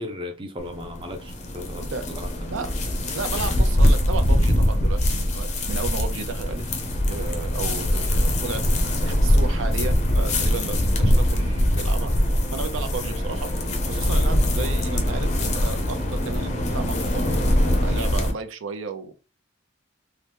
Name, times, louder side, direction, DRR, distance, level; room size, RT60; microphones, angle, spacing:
voice 1, 0.0-2.3, left 1 dB, 25° right, 0.4 m, -36 dB
sound 1, 0.6-18.3, left 1 dB, 35° left, 0.5 m, -22 dB
voice 2, 3.1-6.6 7.1-12.1 12.5-13.5 13.8-19.1, right 4 dB, 85° right, 0.5 m, -33 dB
2.8 x 2.1 x 3.3 m
head